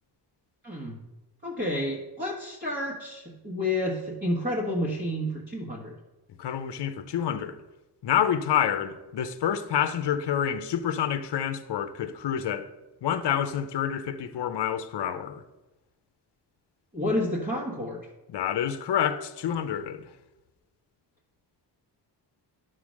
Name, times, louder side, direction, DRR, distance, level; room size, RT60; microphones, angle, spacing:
voice 1, 0.6-1.0 1.4-5.9 16.9-18.1, left 1 dB, 25° right, 1.5 m, -30 dB
voice 2, 6.4-7.6 8.0-12.7 13.0-15.4 18.3-20.1, left 9 dB, 70° left, 0.7 m, -28 dB
11.5 x 3.9 x 6.4 m
wide cardioid pair, 175°, 43 cm